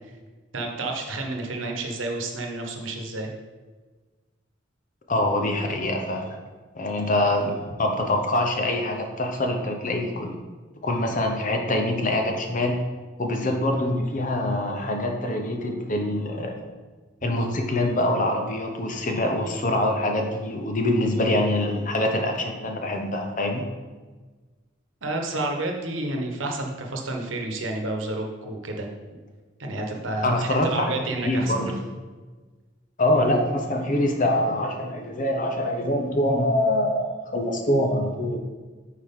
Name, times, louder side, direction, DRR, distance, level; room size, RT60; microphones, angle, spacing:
voice 1, 0.5-3.3 25.0-28.9 29.6-31.7, right 2 dB, 80° right, 2 dB, 1.1 m, -30 dB
voice 2, 5.1-6.4 6.7-10.4 10.8-12.8 13.2-16.7 17.2-23.6 30.2-30.8 31.2-31.7 33.0-38.4, left 1 dB, 40° left, 3 dB, 0.8 m, -24 dB
8.3 x 4.8 x 3.7 m, 1.3 s
head